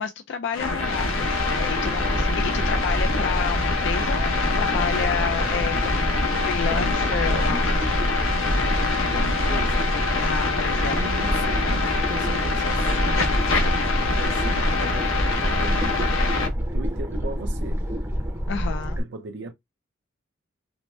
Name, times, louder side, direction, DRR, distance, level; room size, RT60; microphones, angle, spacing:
voice 1, 0.0-6.0 6.4-7.6 10.1-11.0 18.5-19.0, left 6 dB, 65° left, 0.4 m, -30 dB
sound 1, 0.5-16.5, left 4 dB, 85° left, 0.8 m, -25 dB
sound 2, 0.6-19.0, equal, 15° right, 0.6 m, -26 dB
voice 2, 2.4-2.9 7.3-7.7 9.0-9.9 10.7-14.7 15.3-16.0 16.5-17.8 19.0-19.5, right 3 dB, 65° right, 0.6 m, -38 dB
2.7 x 2.0 x 3.2 m
head